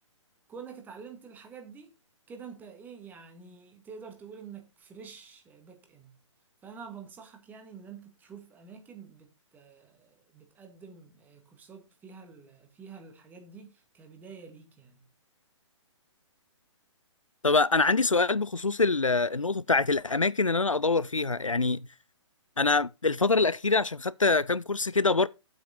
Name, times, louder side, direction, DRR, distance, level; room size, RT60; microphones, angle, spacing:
voice 1, 0.5-1.9 2.3-6.2 6.6-15.1, right 6 dB, 10° right, 1.7 m, -48 dB
voice 2, 17.4-21.9 22.6-25.3, left 3 dB, 90° left, 0.4 m, -25 dB
8.8 x 8.0 x 4.1 m
figure-of-eight pair, 125°, 16 cm